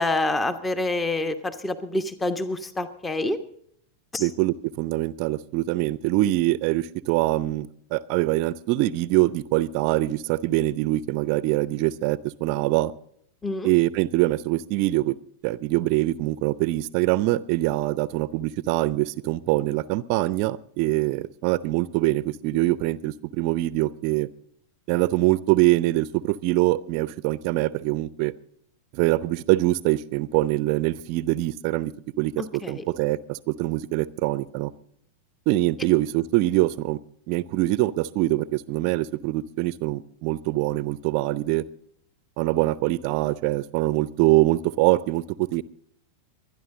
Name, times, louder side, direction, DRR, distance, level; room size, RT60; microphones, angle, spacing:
voice 1, 0.0-3.4 4.1-4.2 13.4-13.7 32.6-32.8, left 2 dB, 15° left, 11 dB, 1.2 m, -27 dB
voice 2, 4.2-12.9 13.6-15.2 15.4-24.3 24.9-28.3 28.9-31.9 32.2-34.7 35.5-37.0 37.3-41.6 42.4-45.6, right 17 dB, 45° right, 18 dB, 0.6 m, -24 dB
23.5 x 10.5 x 3.8 m, 0.68 s
figure-of-eight pair, 90°, 0 cm